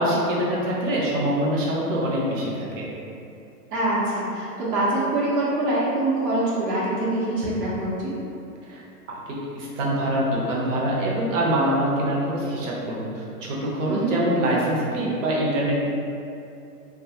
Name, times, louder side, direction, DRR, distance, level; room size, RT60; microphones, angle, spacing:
voice 1, 0.0-2.9 8.6-8.8 9.1-15.9, right 1 dB, 50° right, -4 dB, 0.7 m, -24 dB
voice 2, 3.7-8.1 13.9-14.2, right 1 dB, 85° right, -7 dB, 0.9 m, -24 dB
2.7 x 2.3 x 2.7 m, 2.7 s
hypercardioid pair, 150°, 47 cm